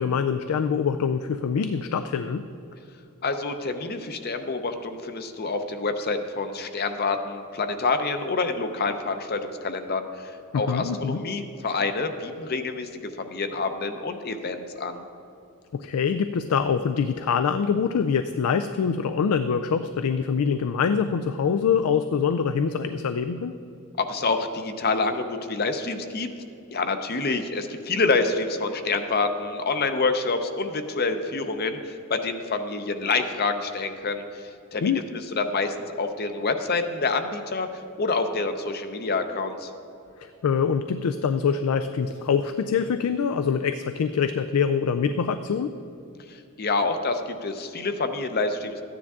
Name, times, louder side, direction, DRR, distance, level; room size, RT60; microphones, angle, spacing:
voice 1, 0.0-2.5 10.5-11.2 15.7-23.5 34.8-35.1 40.2-45.7, left 6 dB, 85° left, 9 dB, 0.4 m, -24 dB
voice 2, 3.2-12.9 13.2-15.0 24.0-26.3 26.7-35.0 35.4-39.7 46.3-48.8, left 3 dB, 45° left, 7 dB, 0.6 m, -27 dB
13.0 x 9.7 x 3.6 m, 2.7 s
head